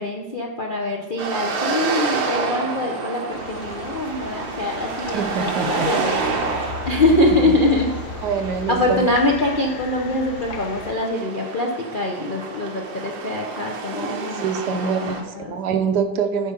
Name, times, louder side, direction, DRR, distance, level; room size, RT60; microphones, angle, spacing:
voice 1, 0.0-8.0 8.7-14.4 14.7-15.6, left 1 dB, 50° left, -1 dB, 0.6 m, -24 dB
sound 1, 1.2-15.2, right 4 dB, 90° right, 1.9 m, -29 dB
sound 2, 3.3-10.9, left 6 dB, 90° left, 1.4 m, -35 dB
voice 2, 5.1-5.9 8.2-9.1 13.9-16.5, right 6 dB, 70° right, 7 dB, 1.2 m, -25 dB
9.2 x 5.4 x 5.2 m, 1.2 s
omnidirectional pair, 2.0 m